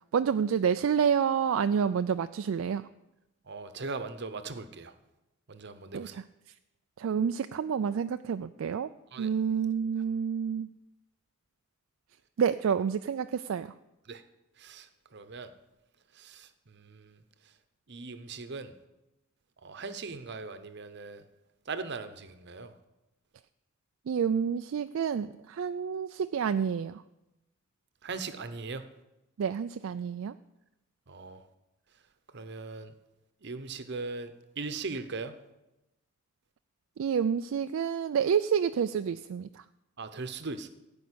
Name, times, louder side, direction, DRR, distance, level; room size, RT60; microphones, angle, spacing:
voice 1, 0.1-2.8 5.9-6.2 7.0-8.9 9.2-10.7 12.4-13.7 24.1-27.0 29.4-30.3 37.0-39.6, right 7 dB, 70° right, 10 dB, 0.3 m, -28 dB
voice 2, 3.4-4.9 5.5-6.2 9.1-9.3 14.0-14.2 14.6-15.5 16.1-17.2 17.9-18.7 19.6-21.2 21.7-22.7 28.0-28.8 31.1-31.4 32.3-32.9 33.4-35.4 40.0-40.7, right 4 dB, 50° right, 10 dB, 0.8 m, -39 dB
15.5 x 5.3 x 8.4 m, 0.96 s
head